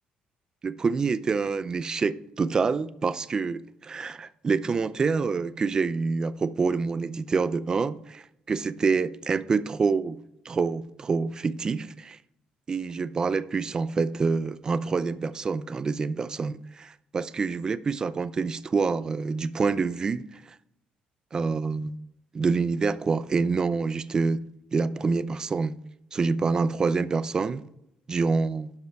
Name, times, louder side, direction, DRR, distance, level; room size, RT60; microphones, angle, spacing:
voice 1, 0.6-10.2 10.4-12.2 12.7-20.6 21.3-21.9 22.3-25.8 26.1-27.6 28.1-28.7, right 4 dB, 25° right, 0.5 m, -27 dB
11.5 x 5.5 x 4.6 m
cardioid pair, 145°, 3 cm